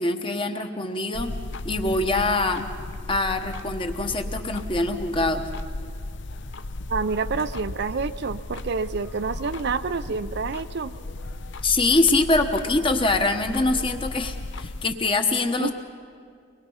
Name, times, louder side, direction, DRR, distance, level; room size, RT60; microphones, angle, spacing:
voice 1, 0.0-1.3 1.6-2.7 3.1-5.4 11.6-15.7, left 2 dB, 25° left, 6 dB, 1.1 m, -24 dB
sound 1, 1.1-14.9, left 2 dB, 60° left, 0.7 m, -35 dB
voice 2, 6.9-10.9 15.6-15.7, right 4 dB, 50° right, 12 dB, 0.5 m, -28 dB
23.5 x 21.5 x 5.6 m, 2.2 s
head